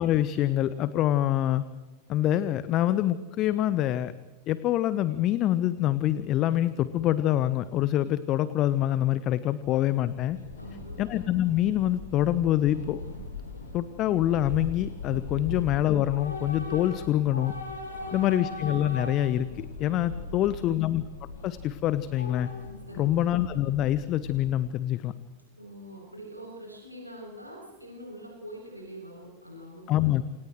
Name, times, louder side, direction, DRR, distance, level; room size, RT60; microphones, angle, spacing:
voice 1, 0.0-1.6 2.1-4.1 4.5-10.4 11.0-13.0 13.7-17.5 18.1-21.0 21.4-22.5 23.0-25.1 29.9-30.2, left 13 dB, 35° left, 14 dB, 0.9 m, -25 dB
Train / Subway metro underground, 10.0-24.8, left 3 dB, 70° left, 6.9 m, -40 dB
voice 2, 10.6-11.0 15.4-15.6 18.0-18.5 20.3-20.8 22.9-23.2 25.6-30.1, equal, 85° right, -2 dB, 7.9 m, -44 dB
28.5 x 28.5 x 3.2 m, 1.2 s
figure-of-eight pair, 90°, 0 cm